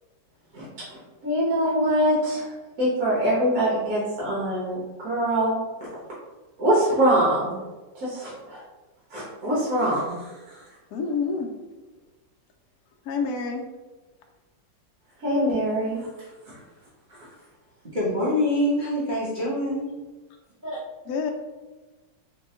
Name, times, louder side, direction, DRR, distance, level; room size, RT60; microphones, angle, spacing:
voice 1, 0.9-2.5 2.8-5.6 6.6-7.6 7.9-8.6 9.1-10.6 15.2-16.1 16.5-16.6, right 1 dB, 60° right, -7 dB, 1.4 m, -24 dB
voice 2, 10.9-11.5 13.0-13.6 21.1-21.3, left 5 dB, 70° left, 1 dB, 1.0 m, -27 dB
voice 3, 17.9-19.8 20.6-20.8, left 1 dB, 35° right, -9 dB, 0.9 m, -25 dB
3.8 x 2.8 x 3.6 m, 1.2 s
omnidirectional pair, 1.9 m